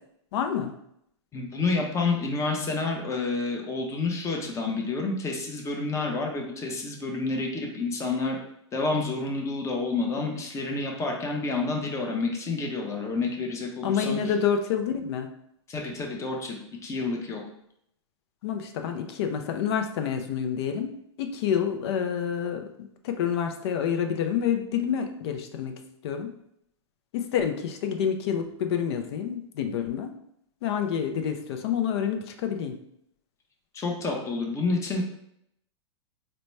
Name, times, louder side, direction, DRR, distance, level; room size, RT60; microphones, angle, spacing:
voice 1, 0.3-0.7 13.8-15.3 18.4-20.9 21.2-22.6 23.0-26.3 27.1-30.1 30.6-32.8, left 8 dB, 60° left, 5 dB, 0.5 m, -28 dB
voice 2, 1.3-8.4 8.7-14.2 15.7-17.4 33.7-35.0, left 3 dB, 20° left, 1 dB, 0.8 m, -29 dB
3.9 x 2.2 x 3.1 m, 0.74 s
hypercardioid pair, 115°, 15 cm